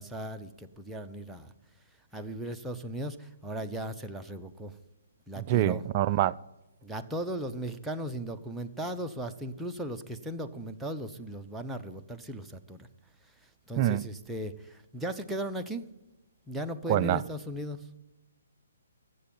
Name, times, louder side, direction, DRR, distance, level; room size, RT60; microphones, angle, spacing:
voice 1, 0.0-1.5 2.1-4.7 5.3-5.8 6.8-12.9 13.7-15.9 16.5-17.8, right 1 dB, 5° right, 0.8 m, -37 dB
voice 2, 5.4-6.3 13.8-14.0 16.9-17.2, right 13 dB, 35° right, 0.4 m, -25 dB
15.0 x 7.7 x 9.1 m
figure-of-eight pair, 135°, 0 cm